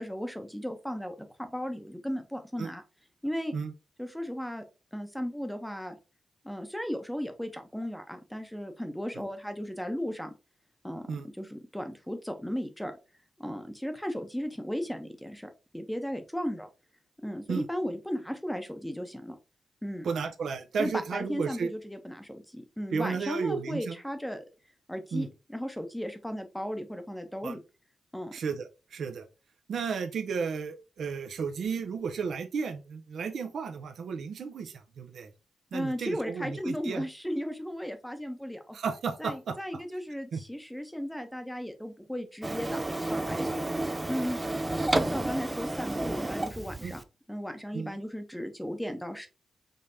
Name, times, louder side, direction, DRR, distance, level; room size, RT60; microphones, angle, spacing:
voice 1, 0.0-2.8 3.2-3.5 4.0-4.6 4.9-6.0 6.4-10.3 10.8-13.0 13.4-16.7 17.2-19.4 19.8-20.1 20.8-24.4 24.9-27.6 28.1-28.3 35.7-38.8 39.2-43.6 44.1-44.4 45.0-47.0 47.3-49.3, equal, 5° left, 7 dB, 0.8 m, -35 dB
voice 2, 20.0-21.7 22.9-24.0 25.1-25.3 27.4-27.6 28.3-29.3 29.7-35.3 35.7-37.1 38.7-39.8 40.3-40.4 46.8-46.9 47.7-47.9, right 5 dB, 75° right, 7 dB, 0.7 m, -33 dB
Printer, 42.4-47.0, right 2 dB, 15° right, 0.4 m, -31 dB
5.3 x 3.3 x 2.7 m, 0.30 s
cardioid pair, 105°, 0 cm